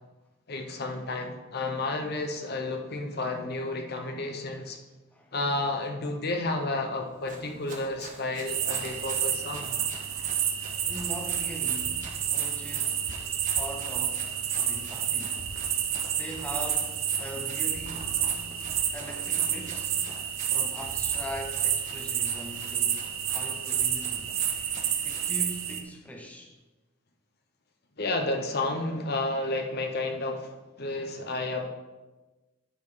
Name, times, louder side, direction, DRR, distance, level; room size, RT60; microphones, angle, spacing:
voice 1, 0.5-4.8 5.3-9.8 28.0-31.7, left 2 dB, 50° left, 4 dB, 0.8 m, -31 dB
Run, 7.1-25.3, right 3 dB, 40° right, 1.2 m, -47 dB
sound 1, 8.5-25.8, right 9 dB, 80° right, 0.8 m, -30 dB
voice 2, 10.8-13.1 13.5-15.5 16.2-18.3 18.9-20.0 20.5-24.3 25.0-26.6, equal, 5° left, 1 dB, 0.8 m, -41 dB
10.0 x 4.5 x 4.9 m, 1.2 s
head